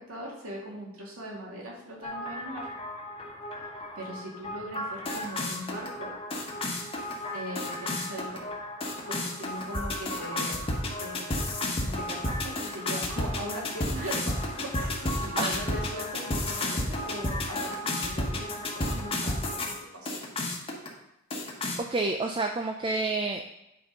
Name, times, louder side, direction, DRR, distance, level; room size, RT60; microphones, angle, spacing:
voice 1, 0.1-2.7 3.6-3.7 3.9-6.1 7.3-8.5 9.1-10.7 11.0-11.4 11.8-20.2, equal, 90° right, -3 dB, 2.5 m, -40 dB
sound 1, 2.0-19.7 20.1-20.9 21.3-21.8, left 1 dB, 25° left, 1.2 m, -32 dB
voice 2, 21.8-23.5, right 3 dB, 25° right, 4 dB, 0.4 m, -29 dB
9.3 x 4.4 x 5.1 m, 0.88 s
head